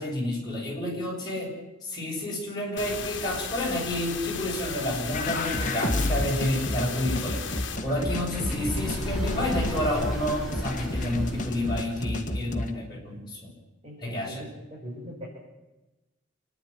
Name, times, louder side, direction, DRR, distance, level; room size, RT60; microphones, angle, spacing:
voice 1, 0.0-1.5 1.8-7.4 7.8-13.5 14.0-14.5, left 1 dB, 20° left, -3 dB, 7.2 m, -30 dB
sound 1, 2.8-7.8, left 6 dB, 70° left, 1.7 m, -35 dB
sound 2, 5.1-12.7, left 1 dB, 40° left, 1.7 m, -31 dB
sound 3, 7.4-12.2, equal, ahead, 6.9 m, -35 dB
voice 2, 13.8-15.3, equal, 30° right, -6 dB, 6.3 m, -41 dB
28.5 x 10.5 x 9.9 m, 1.1 s
head